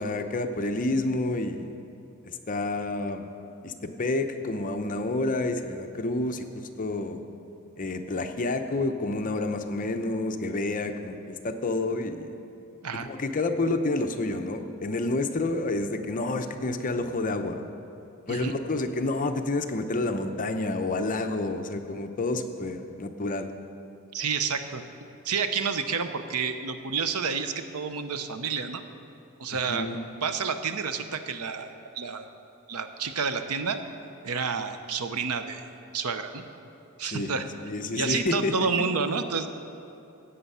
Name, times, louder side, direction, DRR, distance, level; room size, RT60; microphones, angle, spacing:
voice 1, 0.0-1.7 2.2-3.3 3.6-6.5 6.8-7.2 7.8-12.4 13.1-17.6 18.3-23.5 29.7-30.0 37.0-37.3 37.6-38.7, left 2 dB, 40° left, 6 dB, 0.7 m, -29 dB
voice 2, 24.1-24.8 25.2-28.8 29.4-29.9 30.2-32.4 32.7-33.8 34.2-35.6 35.9-36.4 37.0-37.5 37.9-39.5, right 5 dB, 80° right, 9 dB, 0.8 m, -29 dB
15.5 x 8.2 x 5.6 m, 2.7 s
head